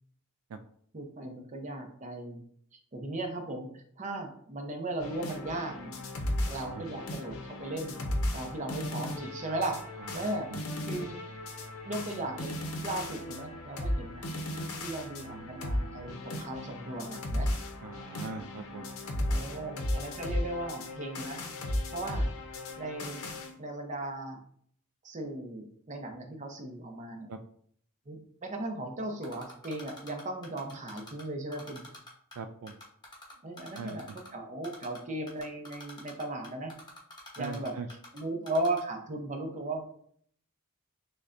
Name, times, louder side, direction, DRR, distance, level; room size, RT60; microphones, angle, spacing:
voice 1, 0.9-2.4 2.7-5.9 6.5-8.0 8.3-9.7 10.1-10.5 10.8-11.2 11.8-12.6 12.8-14.2 14.8-17.5 19.3-21.4 21.9-22.3 22.8-23.3 23.6-24.4 25.0-27.3 28.1-31.8 33.4-36.7 37.4-37.7 38.1-39.8, right 2 dB, 35° right, 3 dB, 0.6 m, -37 dB
sound 1, 5.0-23.5, left 1 dB, 70° left, 0.6 m, -35 dB
voice 2, 6.5-6.8 10.5-10.9 17.8-18.9 27.3-27.4 32.4-32.7 33.8-34.0 37.4-37.9, right 4 dB, 70° right, 7 dB, 0.3 m, -41 dB
Typing, 29.2-31.2 31.5-32.4 32.7-34.3 34.6-35.0 35.3-38.2 38.5-38.8, left 2 dB, 20° left, 0.9 m, -47 dB
6.3 x 2.2 x 2.5 m, 0.62 s
head